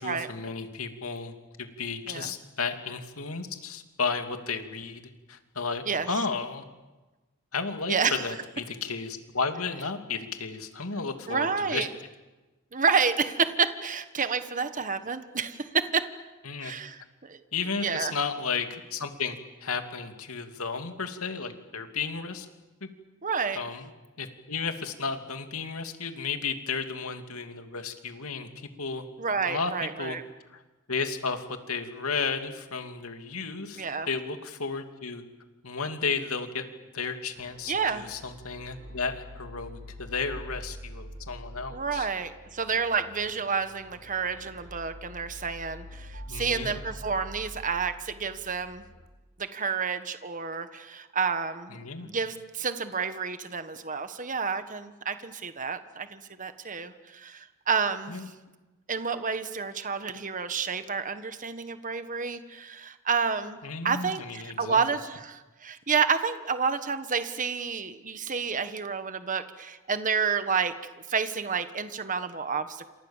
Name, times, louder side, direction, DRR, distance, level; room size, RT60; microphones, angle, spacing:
voice 1, 0.0-1.3 1.6-5.0 5.3-6.6 7.5-11.9 16.4-16.7 17.5-22.5 22.8-22.9 23.5-23.9 24.2-29.1 29.5-29.7 30.0-30.2 30.5-30.6 30.9-35.2 35.6-36.7 36.9-42.1 46.3-46.8 51.7-52.1 58.1-58.3 63.6-64.8, left 5 dB, 85° left, 6 dB, 2.8 m, -33 dB
voice 2, 7.9-8.3 11.3-11.9 12.7-16.1 16.6-17.4 17.8-18.1 23.2-23.6 29.2-30.2 33.8-34.1 37.7-38.0 41.7-48.8 49.4-58.2 58.9-70.7 71.1-72.9, right 5 dB, 40° right, 10 dB, 1.4 m, -29 dB
sound 1, 37.4-49.1, equal, 60° right, 4.3 m, -45 dB
29.0 x 27.0 x 7.4 m, 1.2 s
head